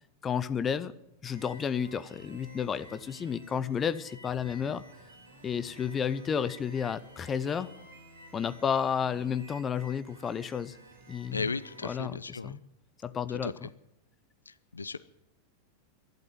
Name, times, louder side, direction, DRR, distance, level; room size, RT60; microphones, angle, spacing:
voice 1, 0.2-0.9 1.2-4.8 5.4-7.7 8.3-10.8 11.1-11.4 11.8-12.2 12.4-12.6 13.0-13.5, left 7 dB, 20° left, 15 dB, 0.8 m, -31 dB
sound 1, 1.3-11.9, right 1 dB, 65° right, 4.7 m, -52 dB
voice 2, 11.3-12.6 13.3-13.7 14.5-15.0, left 4 dB, 75° left, 17 dB, 0.5 m, -36 dB
12.0 x 11.5 x 9.4 m, 0.83 s
figure-of-eight pair, 90°, 0 cm